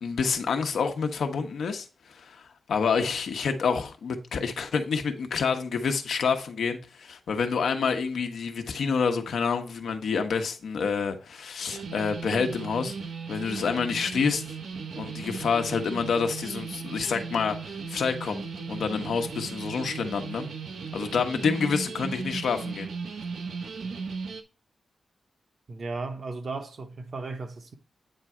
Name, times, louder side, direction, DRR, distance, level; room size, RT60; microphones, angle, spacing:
voice 1, 0.0-12.9 13.3-14.4 15.0-18.4 18.7-20.5 20.9-22.9, left 5 dB, 90° left, 1.0 m, -28 dB
sound 1, 11.7-24.4, right 5 dB, 90° right, 0.8 m, -37 dB
voice 2, 25.7-27.8, right 3 dB, 50° right, 0.9 m, -35 dB
8.8 x 3.7 x 4.3 m
wide cardioid pair, 150°, 0 cm